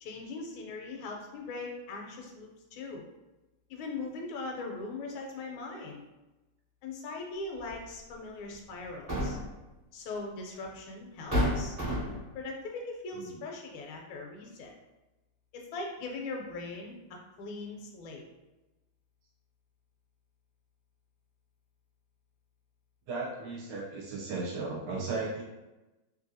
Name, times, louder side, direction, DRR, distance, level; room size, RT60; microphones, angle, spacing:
voice 1, 0.0-3.0 3.7-6.0 6.8-9.4 9.9-11.8 12.3-14.7 15.5-16.9 17.4-18.2, left 3 dB, 80° left, 1 dB, 1.4 m, -40 dB
sound 1, 7.7-7.8 8.8-9.6 10.6-10.7 11.3-12.3, equal, 45° right, 0.4 m, -30 dB
voice 2, 23.1-25.4, right 3 dB, 65° right, -3 dB, 1.1 m, -36 dB
3.2 x 2.6 x 2.6 m, 1.0 s
omnidirectional pair, 2.2 m